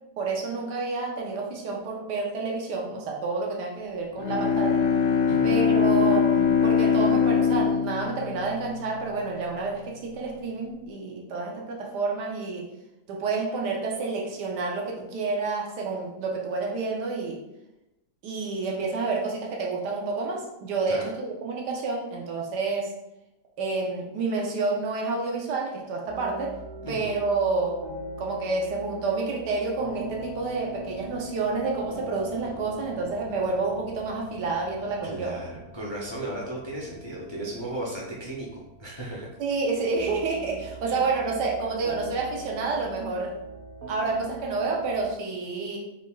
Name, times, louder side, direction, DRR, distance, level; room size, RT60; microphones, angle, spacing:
voice 1, 0.2-4.8 5.4-12.7 13.1-17.4 18.2-22.9 23.6-26.6 26.9-27.8 28.2-35.4 39.4-43.3 43.9-45.8, right 3 dB, 85° right, -1 dB, 1.4 m, -29 dB
Bowed string instrument, 4.2-9.2, left 6 dB, 85° left, 1.2 m, -22 dB
sound 1, 26.1-45.1, right 1 dB, 50° right, 0.6 m, -42 dB
voice 2, 35.0-39.3 40.9-41.0, right 1 dB, 35° left, -4 dB, 0.4 m, -35 dB
5.2 x 3.6 x 2.3 m, 0.92 s
omnidirectional pair, 1.8 m